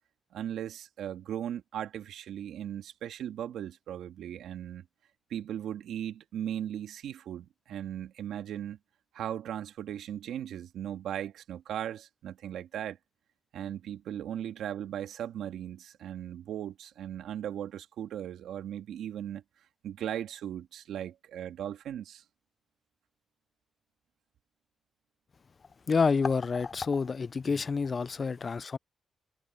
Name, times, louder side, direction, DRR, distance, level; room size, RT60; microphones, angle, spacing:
voice 1, 0.3-4.8 5.3-8.8 9.1-13.0 13.5-19.4 19.8-22.2, right 10 dB, 80° right, 1.9 m, -37 dB
voice 2, 25.9-28.8, left 5 dB, 50° left, 0.4 m, -28 dB
supercardioid pair, 55°, 0 cm